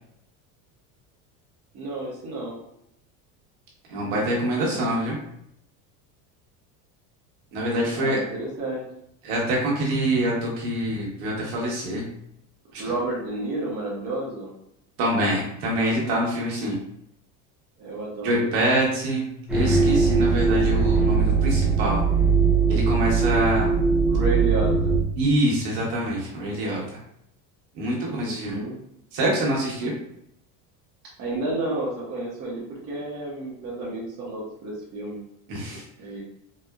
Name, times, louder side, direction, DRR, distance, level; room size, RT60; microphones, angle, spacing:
voice 1, 1.7-2.6 4.6-4.8 7.9-8.8 12.8-14.5 17.8-18.6 24.1-24.9 28.0-28.7 31.2-35.2 36.0-36.2, right 2 dB, 40° right, -5 dB, 0.8 m, -31 dB
voice 2, 3.9-5.2 7.5-8.2 9.2-12.0 12.7-12.9 15.0-16.7 18.2-22.0 22.7-23.7 25.2-27.0 27.7-28.6 29.1-29.9 35.5-35.8, right 1 dB, 60° right, -3 dB, 1.2 m, -25 dB
sound 1, 19.5-25.0, right 4 dB, 5° right, 0.5 m, -20 dB
4.1 x 2.0 x 2.3 m, 0.77 s
cardioid pair, 170°, 40 cm